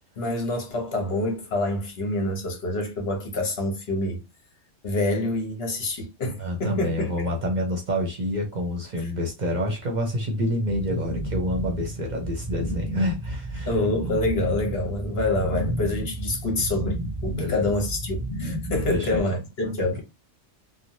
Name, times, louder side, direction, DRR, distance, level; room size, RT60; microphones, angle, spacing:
voice 1, 0.2-4.2 4.8-7.3 9.0-9.1 13.7-20.0, left 2 dB, 60° left, 1.1 m, -27 dB
voice 2, 6.4-13.7 17.3-17.7 18.9-19.2 19.6-19.9, equal, 45° right, 0.7 m, -28 dB
sound 1, 10.6-19.2, right 1 dB, 30° left, 1.0 m, -32 dB
3.0 x 2.1 x 2.6 m
omnidirectional pair, 1.2 m